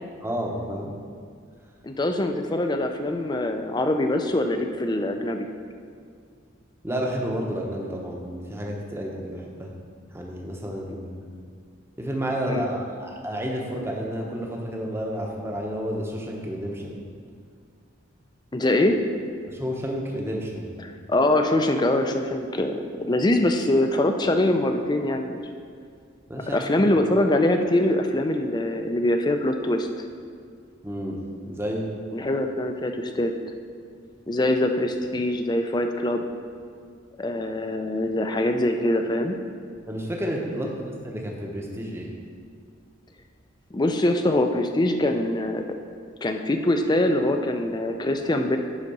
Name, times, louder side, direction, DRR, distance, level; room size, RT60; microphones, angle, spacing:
voice 1, 0.2-0.9 6.8-9.7 10.1-11.3 12.0-17.0 19.5-20.9 26.3-26.7 30.8-31.9 39.9-42.1, equal, 10° right, -1 dB, 0.8 m, -31 dB
voice 2, 1.8-5.5 12.5-12.7 18.5-19.0 21.1-25.4 26.3-30.1 32.1-33.3 34.3-36.3 37.2-39.4 43.7-45.6 46.2-48.6, left 1 dB, 20° left, 6 dB, 0.4 m, -23 dB
9.9 x 4.0 x 5.4 m, 2.2 s
head